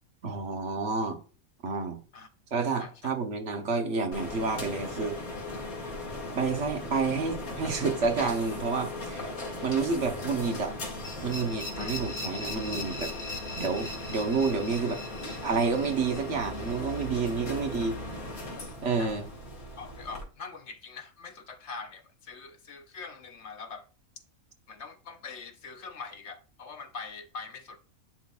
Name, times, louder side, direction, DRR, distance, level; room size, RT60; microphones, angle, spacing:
voice 1, 0.2-1.2 1.6-2.0 2.5-5.2 6.3-9.3 9.6-10.8 11.2-13.1 13.6-15.0 15.4-18.0 18.8-19.3, right 4 dB, 55° right, 1.3 m, -29 dB
voice 2, 2.8-3.2 11.8-12.0 19.0-19.2 19.8-23.8 24.7-27.8, left 4 dB, 55° left, 1.0 m, -43 dB
sound 1, 4.1-20.2, left 1 dB, 75° left, 2.3 m, -38 dB
sound 2, 11.0-17.8, left 2 dB, 30° left, 2.0 m, -41 dB
10.5 x 3.9 x 2.4 m
omnidirectional pair, 1.5 m